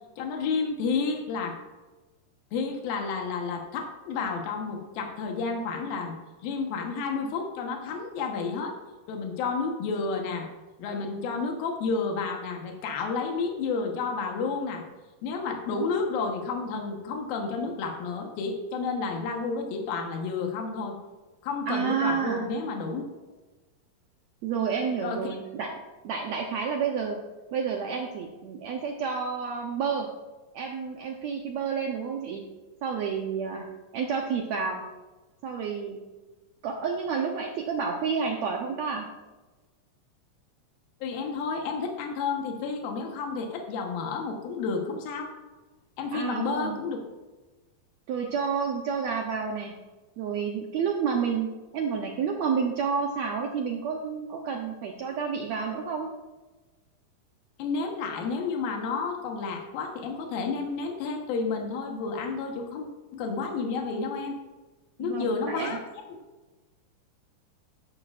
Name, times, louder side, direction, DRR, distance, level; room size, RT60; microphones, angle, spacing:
voice 1, 0.2-1.6 2.5-6.2 6.4-8.7 9.1-10.5 10.8-14.8 15.2-21.0 21.4-23.0 25.0-25.4 41.0-45.3 46.0-47.0 57.6-64.4 65.0-65.8 66.1-66.2, left 4 dB, 80° left, 2 dB, 3.0 m, -31 dB
voice 2, 21.7-22.5 24.4-25.8 26.0-27.2 27.5-30.1 30.5-32.4 32.8-34.8 35.4-36.0 36.6-39.0 46.1-46.8 48.1-49.7 50.2-56.1 65.0-65.8, right 6 dB, 80° right, 2 dB, 1.6 m, -30 dB
12.5 x 10.0 x 2.5 m, 1.2 s
omnidirectional pair, 4.1 m